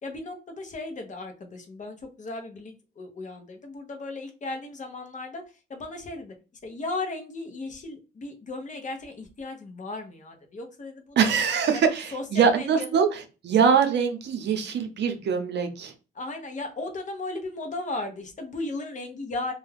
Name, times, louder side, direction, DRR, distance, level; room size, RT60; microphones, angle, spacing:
voice 1, 0.0-5.4 5.7-6.3 6.6-11.2 11.7-13.1 16.1-19.5, left 2 dB, 40° left, 4 dB, 0.8 m, -36 dB
voice 2, 11.2-15.9, right 6 dB, 60° right, 6 dB, 0.7 m, -23 dB
2.4 x 2.3 x 3.3 m, 0.32 s
cardioid pair, 90°, 20 cm